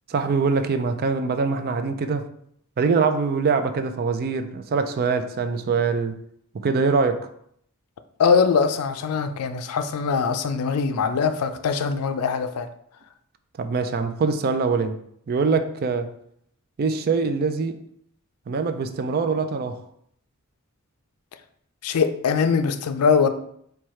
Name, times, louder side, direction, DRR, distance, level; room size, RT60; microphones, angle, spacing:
voice 1, 0.1-2.2 2.8-6.1 6.6-7.2 13.6-14.9 15.3-16.1 16.8-17.7 18.5-19.8, right 4 dB, 45° right, 9 dB, 0.4 m, -23 dB
voice 2, 8.2-12.7 21.8-23.3, left 5 dB, 85° left, 9 dB, 0.4 m, -22 dB
4.6 x 2.3 x 4.2 m, 0.69 s
head